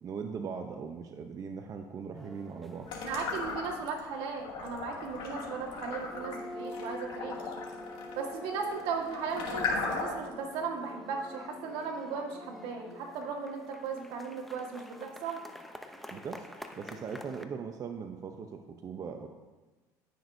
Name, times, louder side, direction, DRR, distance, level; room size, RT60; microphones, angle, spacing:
voice 1, 0.0-2.9 16.1-16.5 16.8-19.3, right 6 dB, 40° right, 4 dB, 0.7 m, -40 dB
sound 1, 2.2-17.4, left 1 dB, ahead, 0.7 m, -47 dB
sound 2, 2.9-4.0 4.4-10.3, left 4 dB, 65° left, 2.5 m, -37 dB
voice 2, 3.0-7.4 8.1-15.4, right 5 dB, 75° right, 1 dB, 1.6 m, -37 dB
16.0 x 6.1 x 2.7 m, 1.2 s
supercardioid pair, 105°, 9 cm